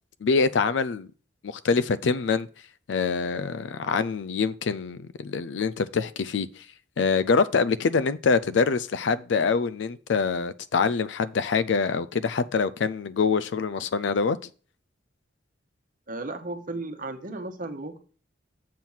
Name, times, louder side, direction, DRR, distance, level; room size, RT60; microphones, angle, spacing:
voice 1, 0.2-1.1 1.4-2.5 2.9-6.5 7.0-14.4, left 5 dB, 70° left, 0.4 m, -25 dB
voice 2, 16.1-18.0, right 2 dB, 45° right, 1.0 m, -35 dB
7.5 x 4.4 x 5.6 m
head